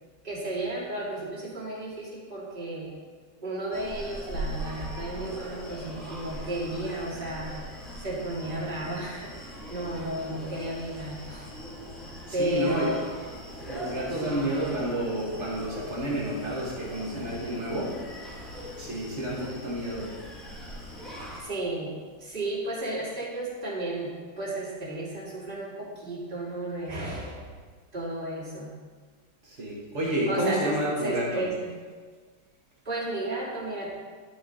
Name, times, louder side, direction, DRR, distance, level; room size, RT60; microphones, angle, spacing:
voice 1, 0.2-2.9 3.4-7.6 8.0-11.5 12.3-13.0 14.1-14.5 21.3-27.4 27.9-28.7 30.3-30.8 31.0-31.7 32.8-33.9, right 1 dB, 20° right, -8 dB, 2.1 m, -33 dB
Screaming, 3.7-21.4, equal, ahead, 0.7 m, -40 dB
voice 2, 12.3-12.9 13.7-17.9 18.8-20.1 29.4-31.4, right 1 dB, 40° right, -5 dB, 1.0 m, -30 dB
12.0 x 5.0 x 3.8 m, 1.5 s
omnidirectional pair, 3.7 m